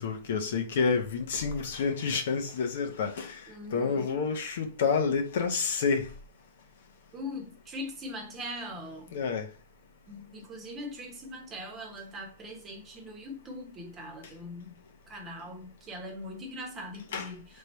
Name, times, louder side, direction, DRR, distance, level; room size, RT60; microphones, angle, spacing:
voice 1, 0.0-6.1 9.1-9.5 17.1-17.3, left 5 dB, 65° left, 0.9 m, -29 dB
voice 2, 3.5-4.2 7.1-9.2 10.1-14.7 15.1-17.5, left 1 dB, 20° right, 1.1 m, -41 dB
3.5 x 3.3 x 4.3 m
hypercardioid pair, 155°, 0 cm